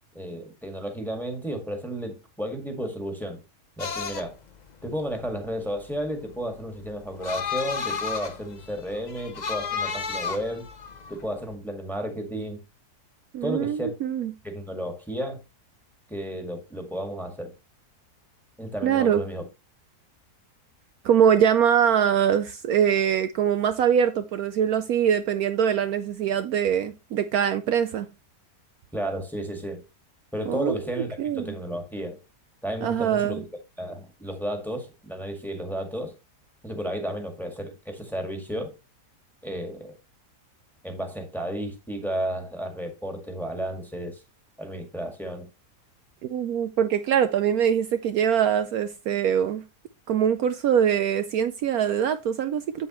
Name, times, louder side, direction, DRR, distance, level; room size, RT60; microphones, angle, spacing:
voice 1, 0.1-3.4 3.8-4.4 4.8-10.6 11.1-12.6 13.4-14.0 14.4-15.4 16.1-17.5 18.6-19.4 28.9-29.8 30.3-32.2 32.6-33.5 33.8-36.1 36.6-38.7 39.4-39.9 40.8-44.2 44.6-45.5, equal, ahead, 1.8 m, -32 dB
sound 1, 3.8-11.5, left 6 dB, 40° left, 0.6 m, -33 dB
voice 2, 13.3-14.3 18.8-19.2 21.0-28.1 30.4-30.7 31.2-31.5 32.8-33.4 46.2-49.6 50.1-52.9, right 8 dB, 70° right, 1.0 m, -23 dB
7.9 x 7.9 x 3.0 m
omnidirectional pair, 1.7 m